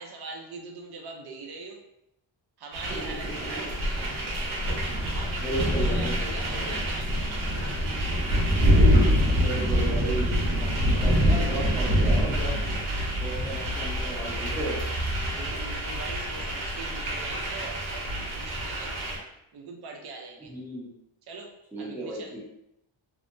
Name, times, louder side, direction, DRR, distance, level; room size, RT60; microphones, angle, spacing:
voice 1, 0.0-1.8 2.6-4.3 5.1-7.9 15.3-18.9 19.5-20.5 21.3-21.5 21.8-22.4, right 3 dB, 55° right, 2 dB, 0.6 m, -42 dB
sound 1, 2.7-19.2, equal, 90° right, 0.8 m, -26 dB
voice 2, 2.9-3.7 5.4-6.8 9.4-12.6 13.2-14.8 20.5-20.9 21.7-22.4, right 1 dB, 5° right, -7 dB, 0.7 m, -35 dB
2.7 x 2.1 x 2.5 m, 0.81 s
wide cardioid pair, 135°, 47 cm